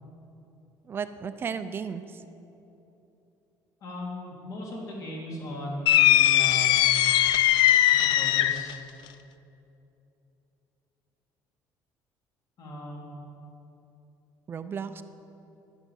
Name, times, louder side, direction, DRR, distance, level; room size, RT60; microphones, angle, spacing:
voice 1, 0.8-2.2 14.5-15.0, right 6 dB, 30° right, 10 dB, 0.5 m, -34 dB
voice 2, 3.8-6.8 7.9-8.8 12.6-13.2, left 1 dB, 50° left, -2 dB, 3.1 m, -38 dB
sound 1, 5.9-8.7, left 13 dB, 75° left, 0.4 m, -20 dB
11.5 x 7.4 x 9.1 m, 2.9 s
cardioid pair, 160°, 8 cm